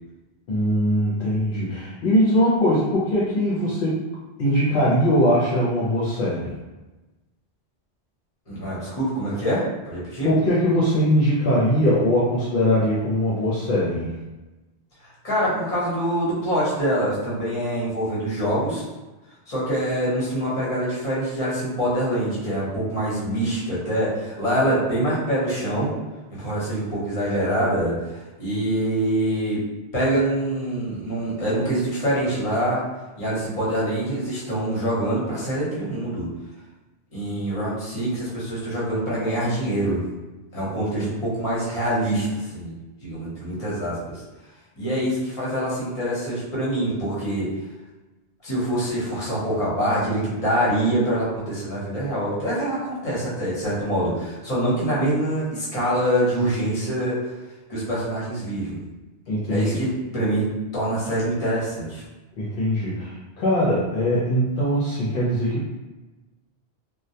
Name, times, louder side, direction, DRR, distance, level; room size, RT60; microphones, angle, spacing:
voice 1, 0.5-4.0 4.4-6.5 10.2-14.1 59.3-59.8 62.4-65.7, equal, 65° left, -7 dB, 0.7 m, -21 dB
voice 2, 8.5-10.3 15.0-18.8 19.5-25.9 26.3-29.6 29.9-32.8 33.2-36.3 37.1-40.0 40.5-42.7 43.0-44.2 44.8-47.5 48.4-57.2 57.7-58.8 59.5-60.5 60.7-62.0, right 1 dB, 35° left, -8 dB, 0.9 m, -25 dB
2.2 x 2.1 x 2.7 m, 1.1 s
omnidirectional pair, 1.1 m